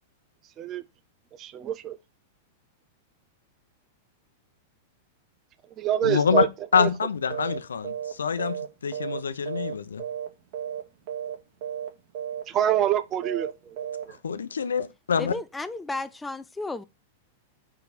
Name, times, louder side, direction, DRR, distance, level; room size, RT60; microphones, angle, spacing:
voice 1, 1.4-2.0 5.8-6.5 6.7-6.9 12.5-13.8 14.1-14.2, right 11 dB, 35° right, 0.6 m, -26 dB
voice 2, 6.0-6.4 6.7-10.0 14.1-15.3, left 6 dB, 90° left, 0.7 m, -26 dB
sound 1, 7.3-7.6 7.8-8.1 8.4-9.7 10.0-10.3 10.5-10.8 11.1-11.3 11.6-11.9 12.1-12.4 12.7-13.0 13.2-13.5 13.8-14.0, right 9 dB, 60° right, 1.8 m, -33 dB
voice 3, 15.2-16.8, left 2 dB, 10° left, 0.4 m, -33 dB
5.1 x 4.8 x 4.2 m
hypercardioid pair, 110°, 0 cm